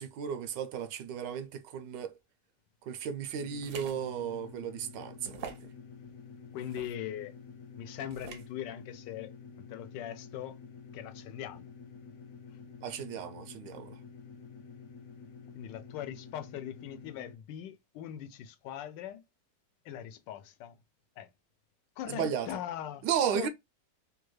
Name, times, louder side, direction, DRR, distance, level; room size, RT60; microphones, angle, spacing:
voice 1, 0.0-2.1 2.8-5.7 12.8-14.0 22.1-22.5 23.0-23.5, right 8 dB, 90° right, 1.3 m, -34 dB
sound 1, 3.3-17.4, left 5 dB, 70° left, 0.8 m, -49 dB
sound 2, 3.6-4.0 4.5-4.6 5.2-5.7 6.6-6.9 8.1-8.5, right 6 dB, 70° right, 0.7 m, -45 dB
voice 2, 6.5-7.3 7.8-10.6 10.9-11.7 12.5-12.6 15.5-19.2 19.8-20.8 21.2-21.3 22.0-23.1 23.3-23.5, left 10 dB, 85° left, 1.2 m, -41 dB
3.3 x 2.3 x 3.1 m
omnidirectional pair, 1.9 m